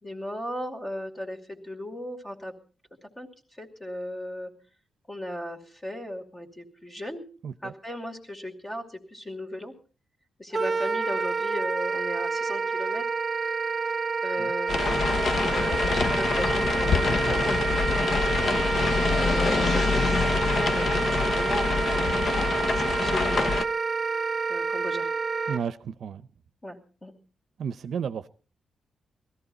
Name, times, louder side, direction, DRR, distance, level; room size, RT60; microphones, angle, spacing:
voice 1, 0.0-2.5 3.0-3.3 3.6-4.5 5.1-7.2 7.6-9.7 10.4-13.0 14.2-17.9 18.9-21.7 21.9-23.5 24.5-25.1 26.6-27.1, left 1 dB, 20° left, 2.6 m, -36 dB
voice 2, 7.4-7.7 14.4-14.5 19.0-19.2 25.5-26.3 27.6-28.3, right 7 dB, 70° right, 0.6 m, -33 dB
Wind instrument woodwind instrument, 10.5-25.6, right 4 dB, 35° right, 0.7 m, -28 dB
sound 1, 14.7-23.6, left 4 dB, 50° left, 0.8 m, -26 dB
20.0 x 14.0 x 4.1 m
wide cardioid pair, 135°, 0 cm